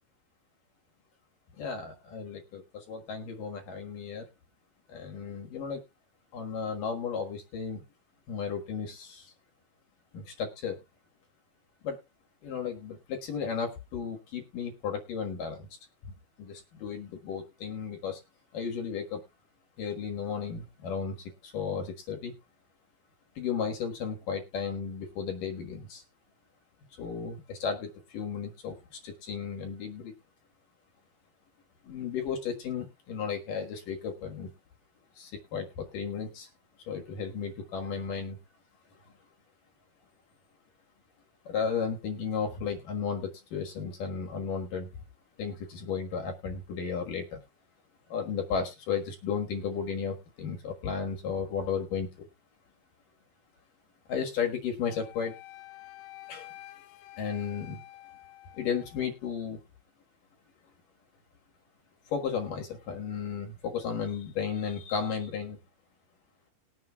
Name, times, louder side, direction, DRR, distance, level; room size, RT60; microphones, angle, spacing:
voice 1, 1.6-4.3 4.9-5.8 6.3-7.8 8.3-9.3 10.1-10.8 11.8-12.0 12.4-15.7 16.4-18.2 18.5-19.2 19.8-22.3 23.4-26.0 27.0-30.1 31.8-34.5 35.2-36.5 36.9-38.4 41.5-44.9 45.4-47.4 48.1-52.1 54.1-55.3 56.3-56.5 57.2-57.8 58.6-59.6 62.1-65.6, left 6 dB, 60° left, 2 dB, 2.3 m, -34 dB
Wind instrument woodwind instrument, 54.9-59.1, left 16 dB, 90° left, 3.6 m, -49 dB
20.0 x 7.7 x 2.3 m, 0.26 s
omnidirectional pair, 5.8 m